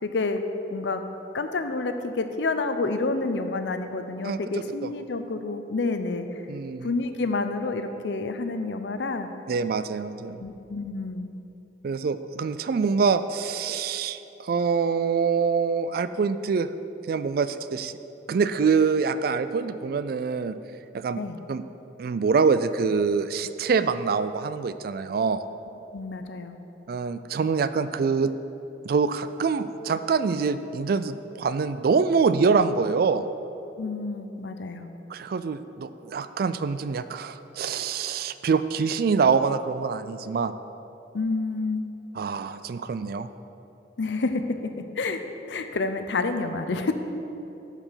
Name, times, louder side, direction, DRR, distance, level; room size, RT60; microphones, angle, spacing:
voice 1, 0.0-0.4 0.7-1.0 1.3-6.4 6.8-9.3 10.4-11.3 21.1-21.4 25.9-26.6 33.8-34.9 41.1-41.9 44.0-44.6 45.0-46.9, left 3 dB, 80° left, 8 dB, 0.6 m, -29 dB
voice 2, 6.5-6.9 9.5-10.4 11.8-16.7 17.1-17.9 18.3-20.6 20.9-21.2 21.5-21.6 22.0-25.4 26.9-28.3 28.8-33.3 35.1-40.5 42.1-43.3, right 5 dB, 55° right, 13 dB, 0.3 m, -25 dB
11.5 x 4.9 x 5.6 m, 2.9 s
head